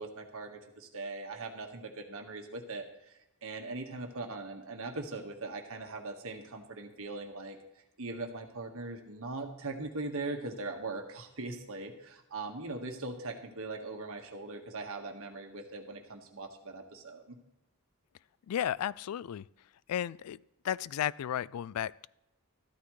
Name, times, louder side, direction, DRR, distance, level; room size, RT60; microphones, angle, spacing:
voice 1, 0.0-7.6 8.0-17.4, right 3 dB, 65° right, 4 dB, 1.6 m, -40 dB
voice 2, 18.5-19.4 19.9-20.4 20.6-22.1, left 10 dB, 75° left, 22 dB, 0.3 m, -33 dB
13.5 x 12.5 x 3.2 m, 0.93 s
head